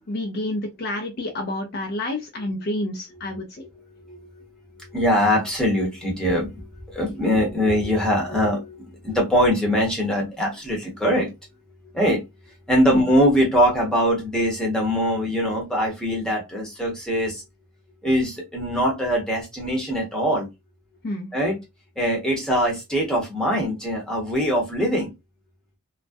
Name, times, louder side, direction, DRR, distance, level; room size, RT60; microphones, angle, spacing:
voice 1, 0.1-3.6 12.9-13.0 21.0-21.3, left 1 dB, 45° left, 0.5 m, -29 dB
voice 2, 3.7-4.4 4.7-11.3 11.9-12.2 12.7-17.4 18.0-20.5 21.3-21.6 22.0-25.1, equal, 5° left, 0.8 m, -22 dB
2.3 x 2.1 x 2.5 m
head